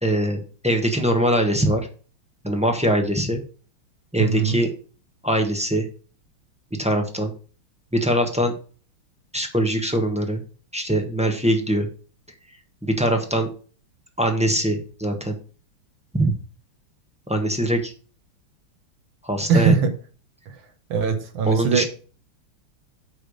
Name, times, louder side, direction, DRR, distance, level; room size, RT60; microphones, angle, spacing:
voice 1, 0.0-1.9 2.4-3.4 4.1-4.7 5.2-5.9 6.8-7.3 7.9-8.5 9.3-10.4 10.7-11.9 12.8-13.5 14.2-15.4 16.1-16.3 17.3-17.9 19.2-19.8 21.5-21.8, right 1 dB, 5° right, 3 dB, 0.8 m, -22 dB
voice 2, 4.2-4.6 19.5-19.9 20.5-20.6 20.9-21.8, right 5 dB, 80° right, 6 dB, 1.9 m, -20 dB
8.9 x 3.4 x 6.5 m, 0.38 s
omnidirectional pair, 2.3 m